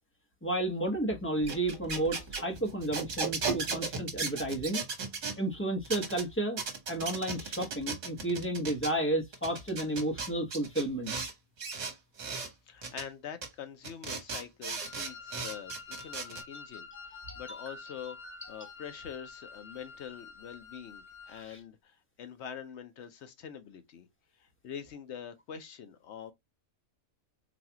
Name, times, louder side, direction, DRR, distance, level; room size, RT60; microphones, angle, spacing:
voice 1, 0.4-4.8 5.4-6.6 6.9-11.1 16.2-16.3 17.3-17.8 18.2-18.7 21.3-21.6, right 1 dB, 10° left, 0.8 m, -32 dB
sound 1, 1.4-5.4 5.9-6.2 6.6-8.9 9.3-11.3 11.6-12.5 12.8-13.0 13.4-13.5 13.8-16.4, right 4 dB, 65° right, 1.4 m, -36 dB
voice 2, 12.7-18.2 18.5-24.1 24.4-26.3, left 8 dB, 60° left, 0.8 m, -45 dB
Wind instrument woodwind instrument, 14.7-21.5, left 5 dB, 80° left, 1.3 m, -48 dB
4.0 x 2.3 x 2.8 m
omnidirectional pair, 1.5 m